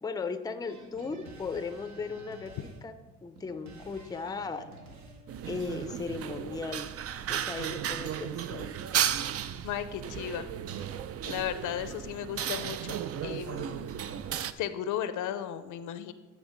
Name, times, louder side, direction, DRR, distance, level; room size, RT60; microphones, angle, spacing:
voice 1, 0.0-2.5 2.8-2.9 3.2-4.7 5.5-6.9 7.3-8.7, left 4 dB, 15° left, 10 dB, 0.5 m, -36 dB
sound 1, 0.7-5.9, right 1 dB, 70° right, 1.3 m, -51 dB
sound 2, 5.3-14.5, right 9 dB, 50° right, 0.4 m, -34 dB
voice 2, 9.6-10.5 11.3-13.0 13.2-13.9 14.6-16.1, left 10 dB, 80° left, 12 dB, 0.6 m, -35 dB
9.8 x 3.4 x 5.1 m, 1.3 s
cardioid pair, 90°, 30 cm